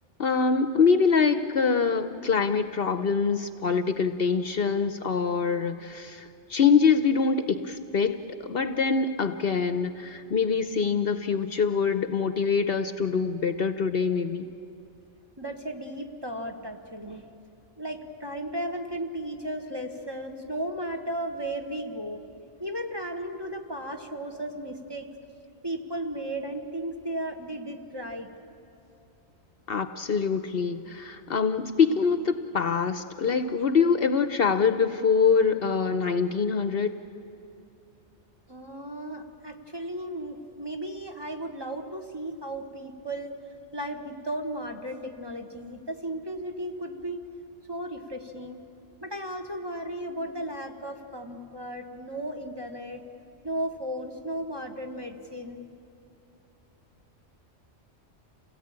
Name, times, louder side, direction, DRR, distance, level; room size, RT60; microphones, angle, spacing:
voice 1, 0.2-14.5 29.7-36.9, left 5 dB, 55° left, 9 dB, 0.9 m, -24 dB
voice 2, 15.4-17.2 17.8-22.2 22.6-25.1 25.6-28.3 38.5-43.4 43.7-47.2 47.7-48.6 49.0-53.0 53.4-55.6, right 1 dB, 20° right, 3 dB, 1.4 m, -35 dB
28.0 x 17.5 x 8.8 m, 2.7 s
omnidirectional pair, 1.2 m